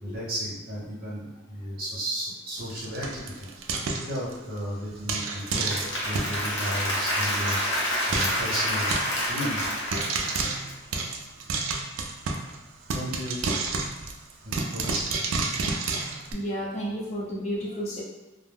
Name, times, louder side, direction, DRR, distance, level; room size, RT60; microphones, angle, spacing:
voice 1, 0.0-3.5 4.0-8.9 9.3-9.6 12.9-13.4 14.4-15.3 15.5-15.6, equal, 50° right, -6 dB, 0.9 m, -34 dB
Frying (food), 2.6-4.6 5.1-6.4 6.8-6.9 7.1-7.2 7.5-7.6 8.1-8.5 8.9-9.4 9.9-12.6 12.9-16.3, right 4 dB, 80° right, 0.3 m, -30 dB
Applause / Crowd, 5.4-10.7, equal, 65° left, 0.8 m, -28 dB
voice 2, 16.3-18.0, equal, 35° left, -7 dB, 0.7 m, -31 dB
2.1 x 2.1 x 3.3 m, 1.1 s
head